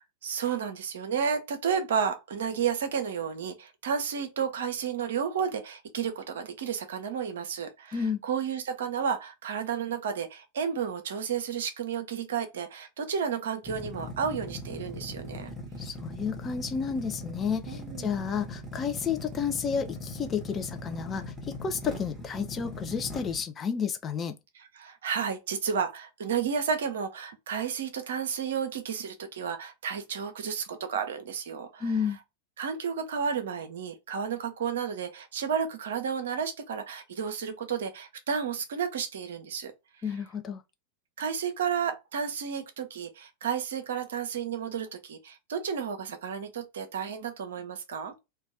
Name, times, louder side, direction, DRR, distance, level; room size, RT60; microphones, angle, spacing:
voice 1, 0.0-15.5 17.7-18.1 24.6-31.9 32.6-39.7 41.2-48.1, right 7 dB, 60° right, 0.6 m, -32 dB
voice 2, 7.9-8.2 15.8-21.2 21.6-24.3 31.8-32.2 40.0-40.6, left 6 dB, 25° left, 0.4 m, -31 dB
sound 1, 13.6-23.4, left 1 dB, 5° right, 1.0 m, -40 dB
2.5 x 2.3 x 3.1 m
figure-of-eight pair, 90°, 0 cm